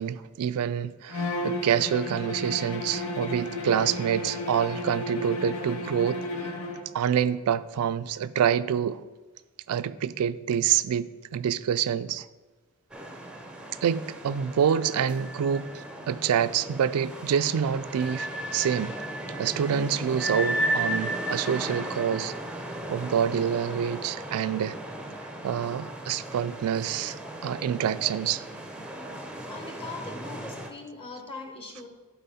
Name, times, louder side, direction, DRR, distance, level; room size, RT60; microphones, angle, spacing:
voice 1, 0.0-6.2 6.9-9.0 9.7-12.2 13.8-15.6 16.1-18.3 18.5-18.9 19.4-22.3 22.9-24.8 25.4-27.1 27.4-28.4, right 8 dB, 80° right, 0.3 m, -26 dB
Bowed string instrument, 1.1-6.9, left 1 dB, 75° left, 1.0 m, -33 dB
sound 1, 12.9-30.7, right 1 dB, 5° right, 0.6 m, -35 dB
voice 2, 29.5-31.9, left 3 dB, 25° left, 1.1 m, -41 dB
11.5 x 4.6 x 4.1 m
head